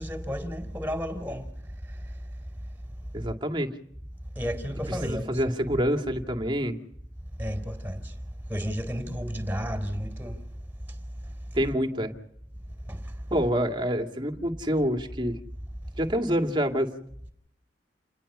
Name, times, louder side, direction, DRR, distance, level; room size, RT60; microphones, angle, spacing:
voice 1, 0.0-1.4 4.4-5.4 7.4-8.1 8.5-10.4 12.9-13.0, equal, 10° right, 4.1 m, -32 dB
voice 2, 3.1-3.8 4.9-6.8 11.5-12.1 13.3-15.4 16.0-16.9, equal, 25° right, 2.3 m, -27 dB
29.5 x 20.0 x 5.6 m
head